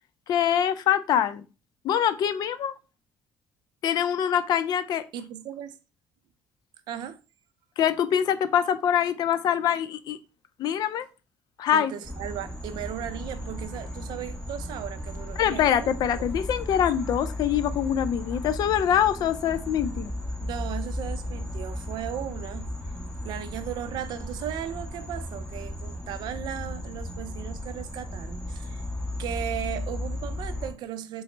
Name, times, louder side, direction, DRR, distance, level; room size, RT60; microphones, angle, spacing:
voice 1, 0.3-1.5 1.8-2.7 3.8-5.0 7.8-10.2 10.6-11.1 11.6-11.9 15.4-20.1, left 9 dB, 65° left, 0.4 m, -24 dB
voice 2, 5.1-5.8 6.9-7.2 11.7-15.9 16.2-16.3 20.4-22.7 23.2-28.8 29.2-31.2, right 10 dB, 75° right, 0.4 m, -36 dB
sound 1, 12.0-30.7, left 1 dB, 15° left, 1.1 m, -35 dB
3.8 x 2.0 x 3.2 m
cardioid pair, 90°, 7 cm